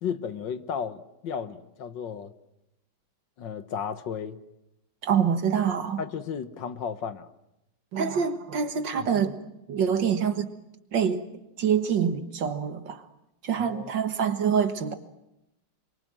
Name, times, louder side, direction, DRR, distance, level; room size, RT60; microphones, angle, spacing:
voice 1, 0.0-2.3 3.4-4.4 6.0-7.3 13.6-13.9, left 7 dB, 65° left, 1.7 m, -34 dB
voice 2, 5.0-6.0 7.9-9.4 9.7-10.5 10.9-11.2 11.6-13.1 13.4-14.9, right 7 dB, 60° right, 2.1 m, -25 dB
27.5 x 24.0 x 7.5 m
omnidirectional pair, 2.2 m